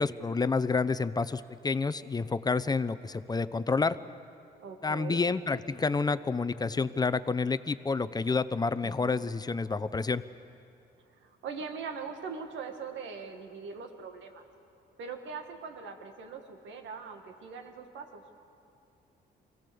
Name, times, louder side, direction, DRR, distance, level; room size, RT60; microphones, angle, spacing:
voice 1, 0.0-4.0 4.8-10.2, left 4 dB, 20° left, 14 dB, 0.6 m, -29 dB
voice 2, 4.6-5.2 8.8-9.2 11.2-14.4 15.0-18.2, right 5 dB, 80° right, 5 dB, 1.8 m, -41 dB
24.0 x 16.5 x 7.0 m, 2.6 s
cardioid pair, 85°, 19 cm